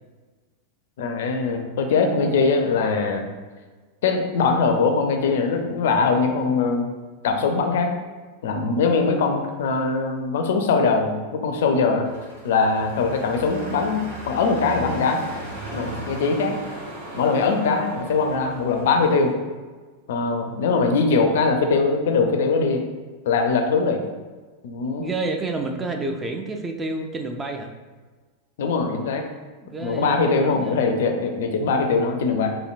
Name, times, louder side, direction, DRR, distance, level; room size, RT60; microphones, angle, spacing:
voice 1, 1.0-3.2 4.0-6.9 7.2-7.9 8.4-12.1 12.4-15.2 15.7-16.6 17.1-19.3 20.1-22.8 23.3-24.0 24.6-25.1 28.6-29.2 29.8-32.6, left 4 dB, 55° left, 4 dB, 0.4 m, -21 dB
sound 1, 12.0-19.3, right 1 dB, 65° right, 1.0 m, -37 dB
voice 2, 25.0-27.7 29.6-30.8, right 3 dB, 15° right, 4 dB, 0.3 m, -29 dB
4.2 x 2.6 x 2.4 m, 1.4 s
figure-of-eight pair, 90°, 0 cm